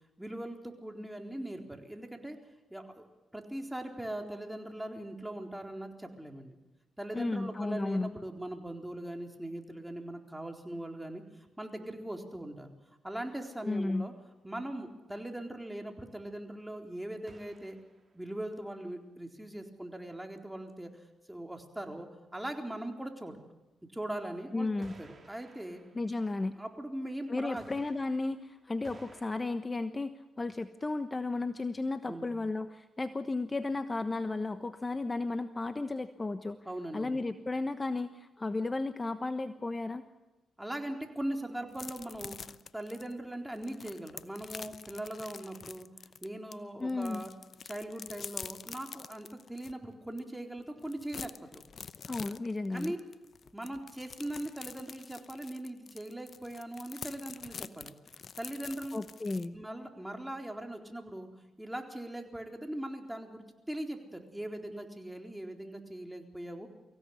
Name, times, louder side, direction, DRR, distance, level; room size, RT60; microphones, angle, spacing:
voice 1, 0.2-2.4 2.7-3.0 3.3-6.6 7.0-12.7 13.0-14.1 14.4-17.8 18.1-23.3 23.9-24.7 25.0-25.8 26.6-27.7 32.1-32.3 36.6-37.2 40.6-45.9 46.2-47.3 47.6-51.6 52.7-53.0 53.5-57.9 58.4-58.9 59.5-61.3 61.6-66.7, right 1 dB, 10° right, 3 dB, 4.1 m, -40 dB
voice 2, 7.1-8.1 13.6-14.1 24.5-24.9 25.9-26.5 27.3-36.6 36.9-40.0 46.8-47.2 52.1-52.9 58.9-59.5, left 3 dB, 30° left, 10 dB, 1.1 m, -34 dB
sound 1, 13.1-14.1 17.3-18.4 24.8-27.1 27.6-29.2, right 3 dB, 45° right, 4.1 m, -58 dB
sound 2, 41.7-46.5 46.9-49.7 50.2-50.3 50.6-59.5, left 6 dB, 55° left, 0.8 m, -46 dB
24.0 x 16.0 x 8.4 m, 1.0 s
hypercardioid pair, 45°, 0 cm